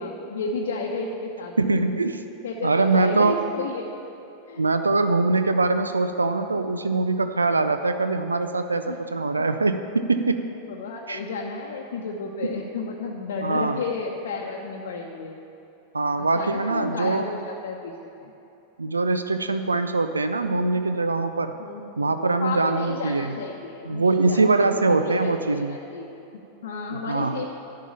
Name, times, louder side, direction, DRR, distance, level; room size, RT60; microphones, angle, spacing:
voice 1, 0.0-1.8 2.4-4.0 4.5-4.6 8.9-9.0 10.7-15.4 16.2-17.9 18.2-18.3 21.6-22.1 22.4-27.4, left 4 dB, 60° left, -1 dB, 0.9 m, -32 dB
voice 2, 1.6-2.2 2.6-3.4 4.6-10.4 11.1-11.2 13.4-13.8 15.9-17.3 18.8-21.5 22.0-23.4 23.9-25.8 26.9-27.4, right 3 dB, 80° right, 9 dB, 0.4 m, -23 dB
11.0 x 5.7 x 8.4 m, 2.8 s
figure-of-eight pair, 90°, 0 cm